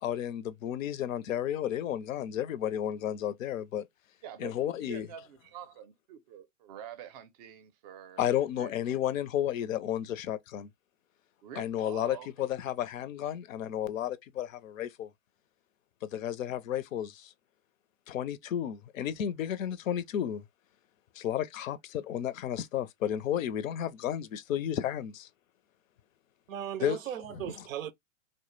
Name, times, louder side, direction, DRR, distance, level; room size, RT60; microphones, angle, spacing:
voice 1, 0.0-3.8 4.4-5.1 8.2-10.7 11.6-15.1 16.0-17.3 18.1-20.4 21.2-25.3 26.8-27.0 27.4-27.5, left 10 dB, 80° left, 0.5 m, -32 dB
voice 2, 4.2-8.3 8.6-8.7 11.4-12.3, right 9 dB, 35° right, 0.4 m, -46 dB
voice 3, 26.5-27.9, right 10 dB, 85° right, 0.5 m, -37 dB
2.1 x 2.0 x 3.0 m
hypercardioid pair, 130°, 39 cm